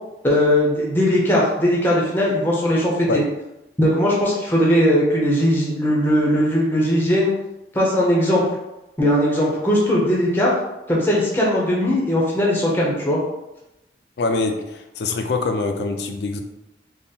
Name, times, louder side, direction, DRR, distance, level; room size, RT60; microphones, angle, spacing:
voice 1, 0.2-3.2 3.8-7.3 7.7-8.4 9.0-10.6 10.9-13.2, equal, 10° left, -4 dB, 0.7 m, -19 dB
voice 2, 14.2-16.4, left 3 dB, 65° left, 5 dB, 0.4 m, -24 dB
3.6 x 2.0 x 4.1 m, 0.94 s
head